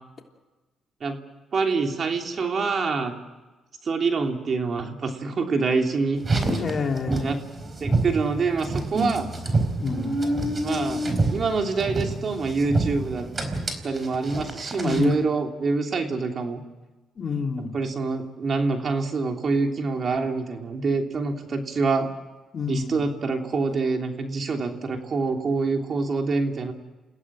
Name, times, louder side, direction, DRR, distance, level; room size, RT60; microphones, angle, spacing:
voice 1, 1.5-3.1 3.8-6.2 7.1-7.4 7.8-9.3 10.6-11.0 11.3-13.3 13.8-16.6 17.7-22.1 22.7-26.7, right 4 dB, 50° right, 3 dB, 3.1 m, -26 dB
Car, 6.2-15.2, right 2 dB, 30° right, 4.3 m, -27 dB
voice 2, 6.5-7.3 9.8-10.2 14.8-15.1 17.2-17.8 22.5-23.0, left 5 dB, 45° left, 2 dB, 3.3 m, -28 dB
29.5 x 16.5 x 7.6 m, 1.2 s
cardioid pair, 90°, 0 cm